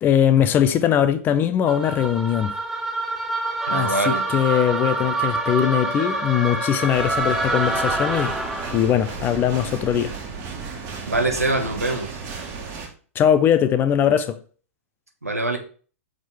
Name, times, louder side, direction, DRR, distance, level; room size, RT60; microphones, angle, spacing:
voice 1, 0.0-2.5 3.7-8.3 8.7-10.1 13.2-14.4, left 9 dB, 25° left, 0.6 m, -20 dB
sound 1, 1.7-8.9, right 2 dB, 5° right, 1.0 m, -26 dB
voice 2, 3.7-4.2 11.1-12.1 15.2-15.6, right 2 dB, 90° right, 1.2 m, -23 dB
sound 2, 6.9-12.9, right 5 dB, 35° right, 1.6 m, -34 dB
6.1 x 4.5 x 3.4 m
figure-of-eight pair, 105°, 8 cm